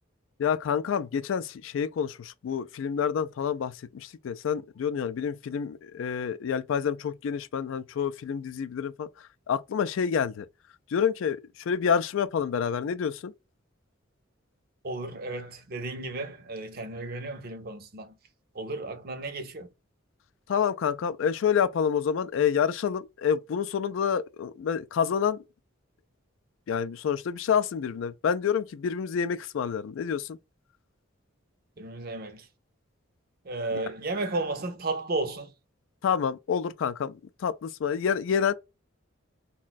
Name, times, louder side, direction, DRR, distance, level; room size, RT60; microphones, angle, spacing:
voice 1, 0.4-10.5 10.9-13.3 20.5-25.4 26.7-30.4 33.7-33.8 36.0-38.5, left 7 dB, 70° left, 0.3 m, -28 dB
voice 2, 14.8-18.2 18.5-19.7 31.8-32.5 33.4-35.5, right 2 dB, 45° right, 0.6 m, -33 dB
2.5 x 2.2 x 3.8 m
head